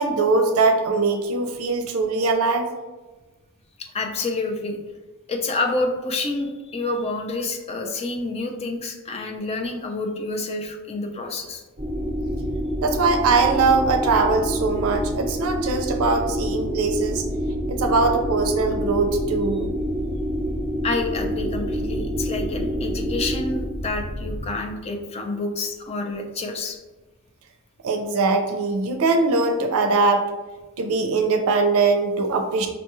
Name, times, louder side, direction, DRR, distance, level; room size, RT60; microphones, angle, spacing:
voice 1, 0.0-2.7 12.8-17.2 17.7-19.7 27.8-30.2 30.8-32.7, right 3 dB, 80° right, 5 dB, 0.4 m, -21 dB
voice 2, 3.8-4.8 5.3-11.6 20.8-26.8, left 3 dB, 30° left, 4 dB, 0.4 m, -28 dB
sound 1, 11.8-24.4, equal, 25° right, 0.8 m, -27 dB
5.0 x 2.2 x 3.0 m, 1.2 s
head